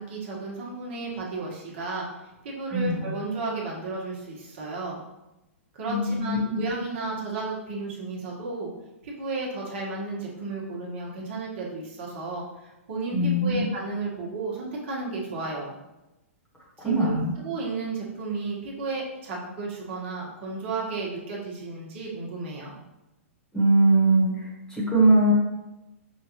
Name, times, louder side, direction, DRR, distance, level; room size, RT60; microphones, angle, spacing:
voice 1, 0.0-2.1 2.4-5.0 5.7-8.7 9.0-15.7 16.8-22.8, right 3 dB, 55° right, -3 dB, 1.3 m, -33 dB
voice 2, 2.7-3.1 5.9-6.6 13.1-13.6 16.8-17.3 23.5-25.3, right 1 dB, 10° left, -5 dB, 1.2 m, -22 dB
4.9 x 2.5 x 3.0 m, 0.98 s
hypercardioid pair, 125°, 8 cm